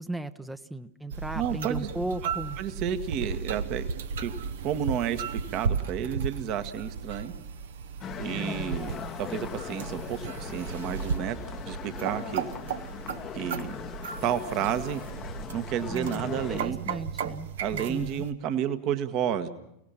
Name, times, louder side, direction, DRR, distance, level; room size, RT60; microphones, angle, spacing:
voice 1, 0.0-2.6 8.3-8.9 15.9-18.2, right 1 dB, 5° right, 11 dB, 0.8 m, -36 dB
sound 1, 1.1-18.3, right 6 dB, 60° right, 1.0 m, -35 dB
voice 2, 1.3-1.9 2.2-2.3 2.6-3.9 4.2-4.3 4.6-7.3 8.2-11.4 11.6-12.5 13.3-13.7 14.2-15.0 15.5-16.9 17.6-19.5, right 9 dB, 40° right, 10 dB, 1.4 m, -31 dB
sound 2, 8.0-16.6, left 9 dB, 30° left, 0.9 m, -40 dB
30.0 x 18.5 x 5.7 m, 0.80 s
figure-of-eight pair, 90°, 0 cm